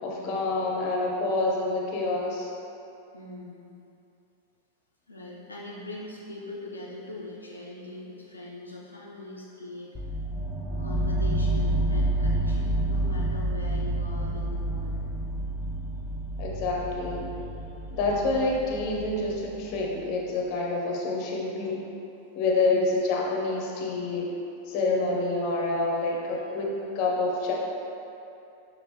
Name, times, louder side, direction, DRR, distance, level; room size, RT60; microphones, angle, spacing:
voice 1, 0.0-2.5 16.4-17.2 17.9-21.8 22.4-24.3 24.7-27.5, left 2 dB, 40° left, -1 dB, 0.6 m, -27 dB
voice 2, 3.1-3.7 5.1-10.0 10.8-15.1 22.6-22.8, left 2 dB, 80° left, -5 dB, 0.4 m, -41 dB
sound 1, 9.9-19.8, right 1 dB, ahead, 0.5 m, -29 dB
5.3 x 2.4 x 3.2 m, 2.8 s
figure-of-eight pair, 90°, 0 cm